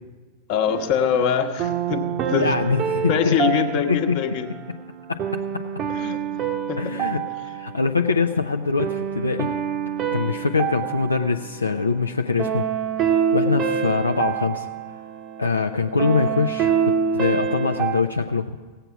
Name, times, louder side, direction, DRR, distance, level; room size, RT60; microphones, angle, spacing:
voice 1, 0.5-2.6 3.1-4.5 5.9-6.2 6.7-6.8, left 8 dB, 45° left, 6 dB, 1.1 m, -23 dB
sound 1, 0.7-18.0, right 7 dB, 35° right, 0.7 m, -27 dB
voice 2, 2.3-4.1 5.1-5.2 6.8-7.2 7.5-9.5 10.1-12.7 13.3-14.7 15.4-18.5, left 4 dB, 80° left, 5 dB, 0.4 m, -23 dB
17.0 x 7.8 x 5.9 m, 1.4 s
figure-of-eight pair, 90°, 0 cm